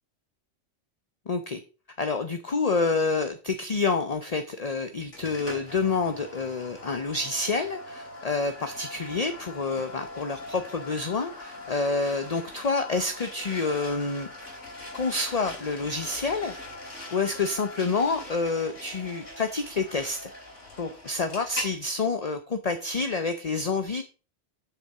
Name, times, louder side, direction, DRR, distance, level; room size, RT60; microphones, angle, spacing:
voice 1, 1.3-1.6 2.0-14.3 14.9-16.5 17.1-20.3 20.8-24.0, left 4 dB, 35° left, 8 dB, 0.8 m, -28 dB
sound 1, 5.1-21.8, left 1 dB, 85° left, 3.6 m, -41 dB
7.8 x 6.8 x 5.7 m, 0.34 s
omnidirectional pair, 1.2 m